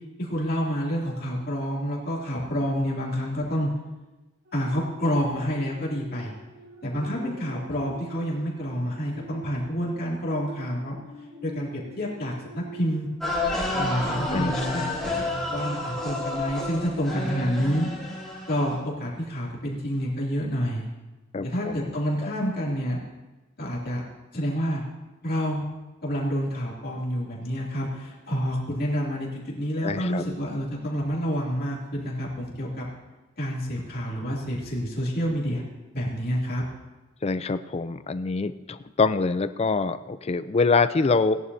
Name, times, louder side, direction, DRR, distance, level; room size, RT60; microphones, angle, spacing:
voice 1, 0.2-3.7 4.5-6.3 6.8-10.9 11.4-13.1 13.7-14.8 15.5-17.9 18.5-20.9 21.4-23.0 23.6-24.0 24.3-24.8 25.2-25.6 26.0-32.8 33.4-35.6 35.9-36.6, equal, 45° left, -4 dB, 2.7 m, -28 dB
sound 1, 4.4-14.3 14.8-15.0, equal, 50° right, 1.7 m, -46 dB
sound 2, 13.2-18.8, left 2 dB, ahead, 2.3 m, -30 dB
voice 2, 14.3-15.0 21.3-21.9 22.2-22.3 29.8-30.2 37.2-41.4, left 4 dB, 30° left, 12 dB, 0.4 m, -25 dB
17.5 x 11.0 x 2.7 m, 1.1 s
head